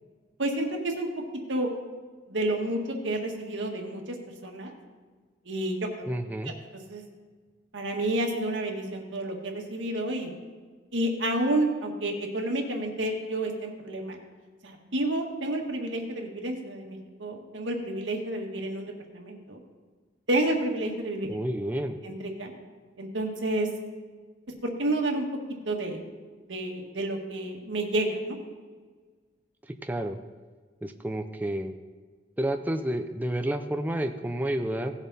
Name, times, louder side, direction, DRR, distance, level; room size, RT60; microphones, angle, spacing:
voice 1, 0.4-1.1 1.5-1.7 2.3-4.2 4.4-4.7 5.5-6.1 6.9-7.0 7.7-10.3 10.9-14.2 14.6-19.6 20.3-21.3 22.0-22.5 23.0-23.7 24.6-25.3 25.7-26.0 26.5-28.4, right 1 dB, 90° right, 1 dB, 1.8 m, -30 dB
voice 2, 6.1-6.5 21.3-22.0 29.8-30.2 30.8-31.7 32.4-34.9, right 1 dB, 10° right, 6 dB, 0.5 m, -30 dB
17.0 x 7.1 x 4.1 m, 1.4 s
head